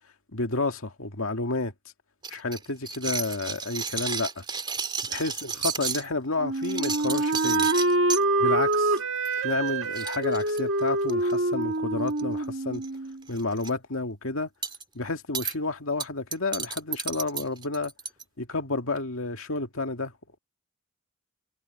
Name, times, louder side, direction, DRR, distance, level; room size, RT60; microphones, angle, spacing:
voice 1, 0.3-1.7 2.3-4.4 5.1-7.7 8.4-9.0 9.4-12.8 13.3-14.5 14.9-17.9 18.4-20.1, left 3 dB, 70° left, 2.1 m, -30 dB
sound 1, 2.2-6.1 6.6-8.2 8.7-9.0 9.2-9.4 9.7-9.8 9.9-11.3 12.1-12.4 12.7-12.9 13.3-13.7 14.6-14.8 15.3-15.5 16.0-18.2, right 5 dB, 20° right, 2.6 m, -32 dB
Wind instrument woodwind instrument, 6.4-13.2, right 2 dB, 60° right, 2.0 m, -26 dB
head